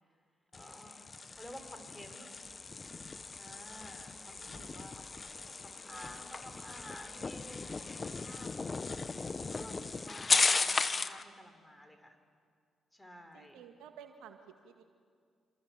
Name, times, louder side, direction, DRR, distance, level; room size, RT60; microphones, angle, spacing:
sound 1, 0.5-11.2, left 4 dB, 35° left, 1.2 m, -36 dB
voice 1, 0.5-1.0 1.3-2.3 3.4-5.1 5.4-8.8 9.5-12.2 12.9-13.6, equal, 10° left, 6 dB, 5.3 m, -52 dB
voice 2, 3.9-4.9 13.3-14.8, right 8 dB, 80° right, 5 dB, 1.9 m, -55 dB
27.5 x 25.5 x 7.8 m, 2.1 s
hypercardioid pair, 45°, 0 cm